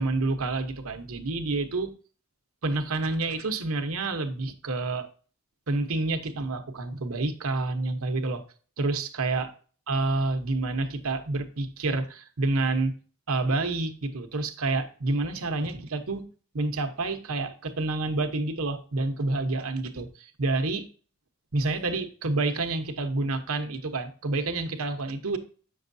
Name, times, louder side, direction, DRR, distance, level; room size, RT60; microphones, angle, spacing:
voice 1, 0.0-1.9 2.6-5.1 5.7-8.4 8.8-9.5 9.9-12.9 13.3-16.3 16.5-20.9 21.5-25.4, right 2 dB, 85° right, 7 dB, 1.0 m, -28 dB
8.2 x 6.5 x 2.6 m, 0.40 s
head